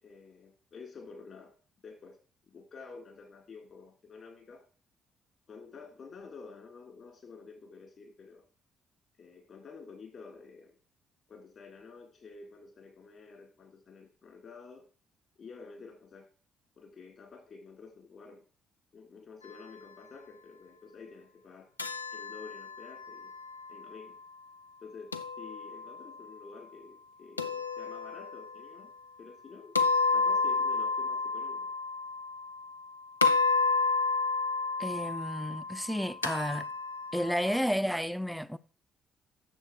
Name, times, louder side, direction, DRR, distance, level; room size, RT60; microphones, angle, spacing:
voice 1, 0.0-1.5 1.8-2.2 2.5-4.6 5.5-8.4 9.2-10.7 11.3-14.8 15.4-16.3 16.8-18.4 18.9-21.7 22.1-23.3 23.7-24.2 24.8-28.9 29.2-29.7 30.1-31.7, left 4 dB, 50° left, 3.3 m, -50 dB
sound 1, 21.8-23.9 25.1-26.1 27.4-28.6 29.8-32.8 33.2-37.6, left 4 dB, 90° left, 0.4 m, -31 dB
voice 2, 34.8-36.7 37.1-38.6, equal, ahead, 0.6 m, -31 dB
9.1 x 7.3 x 4.7 m
figure-of-eight pair, 45°, 0 cm